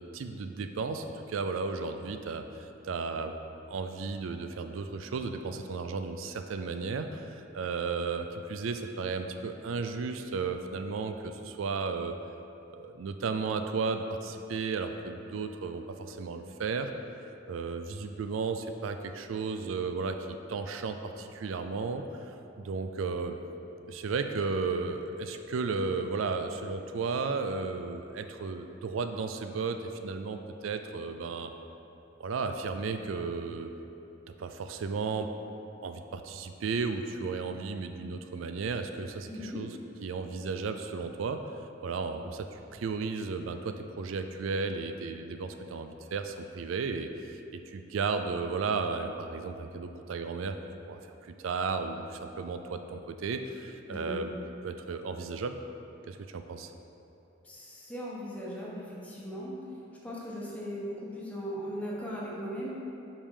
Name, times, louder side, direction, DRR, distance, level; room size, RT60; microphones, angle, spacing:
voice 1, 0.0-3.4 3.7-12.2 12.7-16.9 17.5-22.3 22.6-23.4 23.9-31.5 32.2-33.7 34.4-35.3 35.8-39.7 40.0-41.5 41.8-50.6 50.9-54.3 54.6-55.6 56.1-56.7, right 4 dB, 90° right, 7 dB, 0.4 m, -34 dB
voice 2, 39.3-39.7 53.9-54.3 57.4-59.6 60.0-62.7, equal, 5° left, -6 dB, 1.1 m, -38 dB
5.2 x 5.0 x 5.4 m, 2.9 s
head